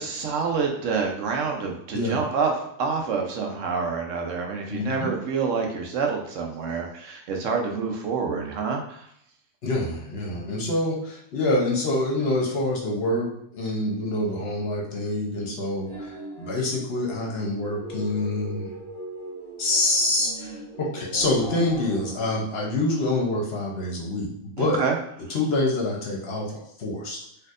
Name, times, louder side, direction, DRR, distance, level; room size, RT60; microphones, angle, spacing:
voice 1, 0.0-2.5 2.8-9.0 24.6-25.0, right 5 dB, 70° right, 2 dB, 1.0 m, -27 dB
voice 2, 4.7-5.1 9.6-18.7 19.6-24.8 25.3-27.2, left 2 dB, 55° left, -2 dB, 0.9 m, -26 dB
sound 1, 15.7-22.3, right 1 dB, 25° right, 1.6 m, -39 dB
4.3 x 2.7 x 2.4 m, 0.71 s
omnidirectional pair, 1.4 m